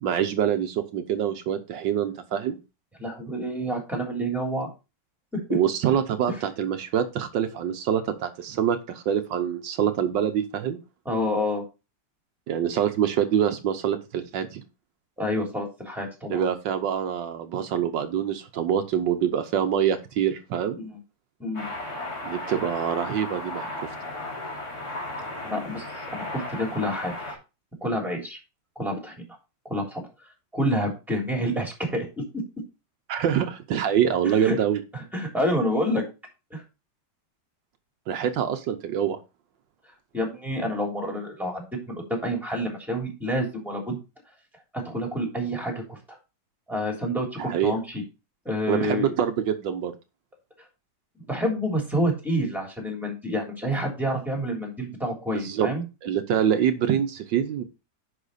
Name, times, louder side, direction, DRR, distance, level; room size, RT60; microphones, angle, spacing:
voice 1, 0.0-2.6 5.5-10.8 12.5-14.6 16.3-20.8 22.2-23.9 33.1-34.8 38.1-39.2 47.4-47.7 48.7-49.9 55.3-55.7 56.0-57.6, right 9 dB, 80° right, 8 dB, 1.5 m, -25 dB
voice 2, 3.0-4.7 5.3-5.6 11.0-11.6 15.2-16.5 20.8-21.0 21.4-21.7 25.4-27.4 27.8-28.4 28.8-29.1 29.6-30.1 30.5-32.1 34.4-34.6 34.9-36.0 36.5-36.6 40.1-44.0 44.7-46.2 46.7-48.0 48.4-49.1 51.3-55.8, equal, ahead, 1 dB, 3.2 m, -28 dB
sound 1, 21.5-27.3, left 2 dB, 55° left, 3.3 m, -35 dB
10.0 x 5.5 x 4.1 m, 0.28 s
omnidirectional pair, 2.0 m